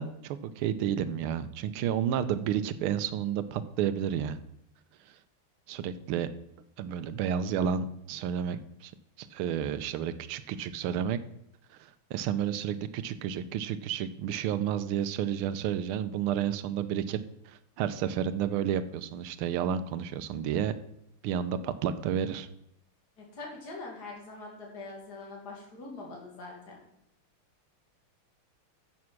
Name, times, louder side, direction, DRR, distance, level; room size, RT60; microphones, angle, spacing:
voice 1, 0.0-4.4 5.7-6.3 6.8-8.9 9.2-11.2 11.8-17.2 17.5-20.7 21.2-22.5, right 9 dB, 85° right, 12 dB, 1.5 m, -31 dB
voice 2, 23.2-26.8, left 3 dB, 45° left, -1 dB, 2.9 m, -43 dB
9.5 x 7.4 x 6.0 m, 0.77 s
omnidirectional pair, 2.4 m